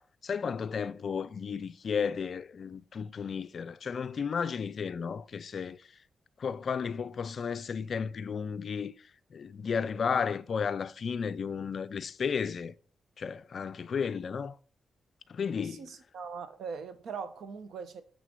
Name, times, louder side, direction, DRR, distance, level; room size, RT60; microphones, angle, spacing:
voice 1, 0.0-5.9 6.4-12.7 13.2-14.6 15.3-15.9, left 6 dB, 50° left, 0.4 m, -33 dB
voice 2, 15.6-18.0, right 5 dB, 85° right, 0.9 m, -41 dB
6.6 x 6.2 x 5.3 m
wide cardioid pair, 135°, 0 cm